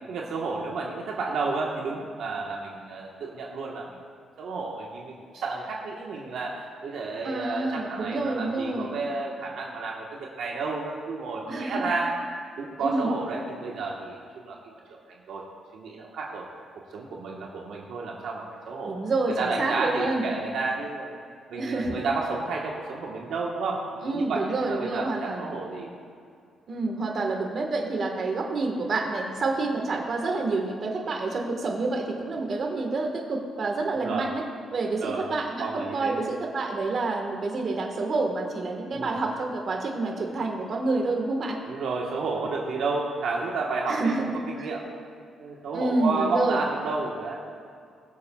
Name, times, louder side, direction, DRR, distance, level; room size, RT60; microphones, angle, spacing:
voice 1, 0.1-4.0 4.4-12.1 12.6-14.6 15.3-15.4 15.7-16.5 16.9-19.0 19.4-21.2 21.5-25.9 33.9-34.3 35.0-35.3 35.6-36.2 38.9-39.2 41.6-44.1 44.5-44.8 45.4-47.3, right 3 dB, 75° right, -2 dB, 1.2 m, -31 dB
voice 2, 7.2-8.9 11.5-11.9 12.8-13.2 18.8-20.3 21.6-22.1 24.0-25.5 26.7-34.4 34.7-41.6 43.9-44.7 45.7-46.6, right 3 dB, 50° right, 1 dB, 1.4 m, -28 dB
21.5 x 7.3 x 2.3 m, 2.3 s
cardioid pair, 110°, 0 cm